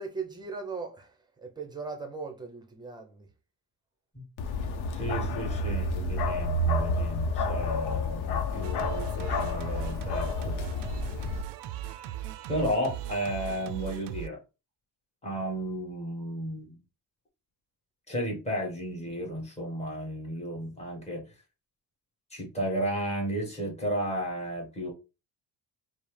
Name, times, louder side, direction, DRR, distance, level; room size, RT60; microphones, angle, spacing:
voice 1, 0.0-3.3, right 4 dB, 10° right, 0.7 m, -39 dB
Bark, 4.4-11.4, left 2 dB, 75° left, 0.7 m, -30 dB
voice 2, 4.9-10.6 12.5-14.4 15.2-16.8 18.1-21.3 22.3-24.9, equal, 15° left, 1.4 m, -33 dB
Singing, 8.6-14.3, right 13 dB, 90° right, 0.5 m, -38 dB
5.2 x 2.1 x 3.2 m
cardioid pair, 170°, 39 cm